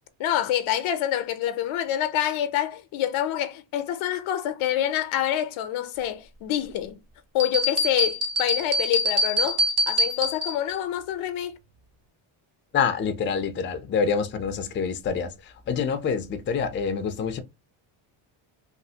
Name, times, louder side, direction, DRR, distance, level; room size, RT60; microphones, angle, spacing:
voice 1, 0.2-7.0 7.3-9.6 9.9-11.6, left 11 dB, 70° left, 0.7 m, -27 dB
sound 1, 7.4-10.7, left 1 dB, 30° right, 0.5 m, -24 dB
voice 2, 12.7-17.4, left 6 dB, 25° left, 0.4 m, -26 dB
3.2 x 2.4 x 2.7 m
cardioid pair, 150°, 49 cm